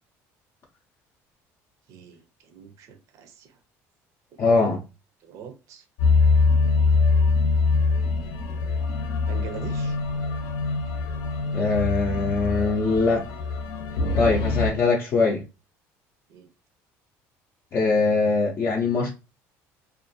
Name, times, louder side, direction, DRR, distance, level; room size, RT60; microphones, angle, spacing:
voice 1, 1.9-3.5 4.6-4.7 5.2-5.8 6.8-6.9 9.3-10.0 14.7-14.8 16.3-16.5, right 6 dB, 60° right, 0.5 m, -42 dB
voice 2, 4.4-4.8 11.5-13.3 14.1-15.4 17.7-19.1, left 3 dB, 40° left, 0.5 m, -22 dB
sound 1, 6.0-14.7, left 4 dB, 85° left, 0.7 m, -23 dB
2.5 x 2.3 x 2.6 m
cardioid pair, 130°, 6 cm